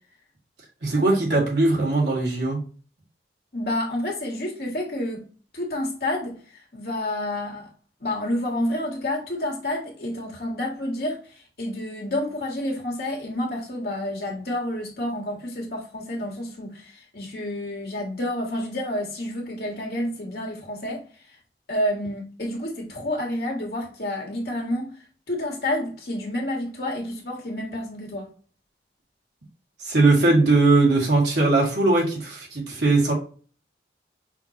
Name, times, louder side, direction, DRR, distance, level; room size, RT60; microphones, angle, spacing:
voice 1, 0.8-2.6 29.8-33.1, right 2 dB, 75° right, 2.1 m, -20 dB
voice 2, 3.5-5.2 5.5-7.7 8.0-21.0 21.7-25.0 25.3-28.3, left 1 dB, 55° left, 1.6 m, -29 dB
5.7 x 3.0 x 2.9 m
head